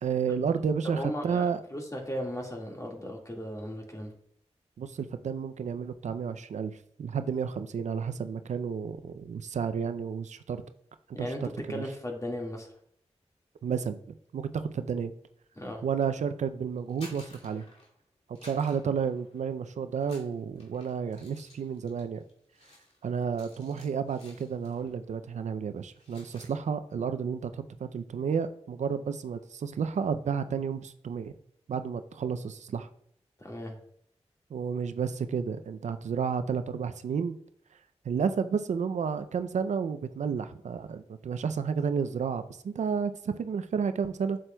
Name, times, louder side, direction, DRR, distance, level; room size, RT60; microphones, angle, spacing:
voice 1, 0.0-1.6 4.8-10.6 11.2-11.3 11.7-11.8 13.6-14.0 14.3-15.1 15.8-17.6 18.4-22.2 23.0-31.3 31.7-32.9 34.5-37.4 38.1-44.4, right 6 dB, 85° right, 11 dB, 0.4 m, -31 dB
voice 2, 0.9-4.1 11.1-11.4 11.7-12.7 15.6-15.8 33.4-33.8, left 1 dB, 30° left, 1 dB, 1.8 m, -36 dB
sound 1, 16.8-18.0 18.4-19.6 20.0-24.9 25.2-25.5 25.8-26.6, left 1 dB, 65° left, 2.4 m, -54 dB
7.9 x 7.5 x 2.2 m, 0.65 s
cardioid pair, 45°, 12 cm